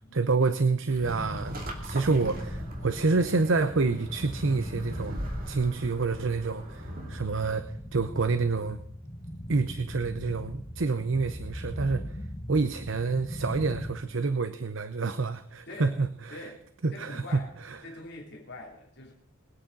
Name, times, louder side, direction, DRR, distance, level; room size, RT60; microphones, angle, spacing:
voice 1, 0.1-1.6 1.8-5.2 5.5-8.8 9.5-12.2 12.5-16.4 16.8-17.8, right 4 dB, 60° right, 11 dB, 0.7 m, -28 dB
sound 1, 0.9-7.3, right 1 dB, 40° right, 2.8 m, -41 dB
sound 2, 1.0-13.9, equal, 20° left, 2.0 m, -39 dB
voice 2, 15.6-16.0 16.3-17.5 17.8-19.1, left 2 dB, 50° left, -1 dB, 3.0 m, -44 dB
22.0 x 8.9 x 4.0 m, 0.73 s
head